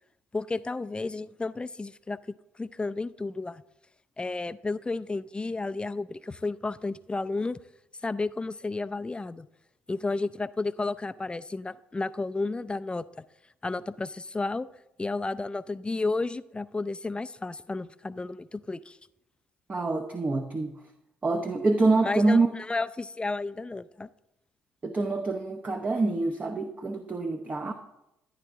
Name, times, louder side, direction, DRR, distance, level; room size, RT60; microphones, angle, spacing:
voice 1, 0.3-2.2 2.6-3.6 4.2-7.6 8.0-9.5 9.9-13.0 13.6-14.7 15.0-19.0 22.0-24.1, left 3 dB, 20° left, 15 dB, 0.5 m, -32 dB
voice 2, 19.7-20.8 21.2-22.5 24.8-27.7, right 3 dB, 30° right, 5 dB, 1.0 m, -26 dB
12.5 x 10.0 x 3.6 m, 0.85 s
hypercardioid pair, 50°, 5 cm